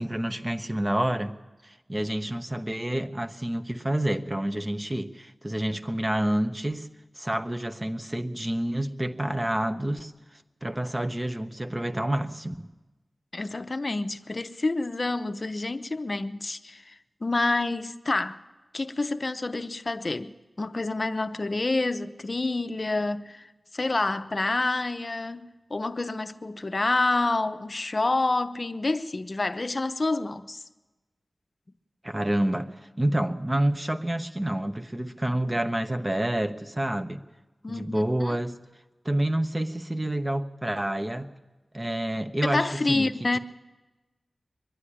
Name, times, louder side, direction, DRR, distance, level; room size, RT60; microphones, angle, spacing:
voice 1, 0.0-1.3 1.6-6.9 7.2-10.1 10.6-12.7 32.0-37.2 37.7-38.6 39.0-41.3 41.7-43.4, right 1 dB, 20° right, 0.9 m, -28 dB
voice 2, 13.3-18.4 18.7-30.6 37.6-38.3 42.4-43.4, left 2 dB, 45° left, 0.7 m, -28 dB
22.0 x 11.5 x 10.0 m
wide cardioid pair, 90°, 0 cm